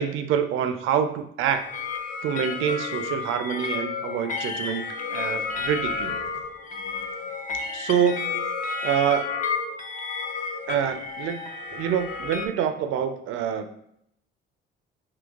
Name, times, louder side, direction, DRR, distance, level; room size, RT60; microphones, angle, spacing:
voice 1, 0.0-1.6 2.2-4.8 5.1-6.1 7.7-8.5 8.8-9.3 10.7-11.4 11.7-13.7, right 8 dB, 85° right, 8 dB, 0.4 m, -26 dB
sound 1, 1.4-12.5, left 5 dB, 40° left, 0.5 m, -31 dB
3.8 x 2.8 x 2.3 m, 0.73 s
cardioid pair, 90°, 20 cm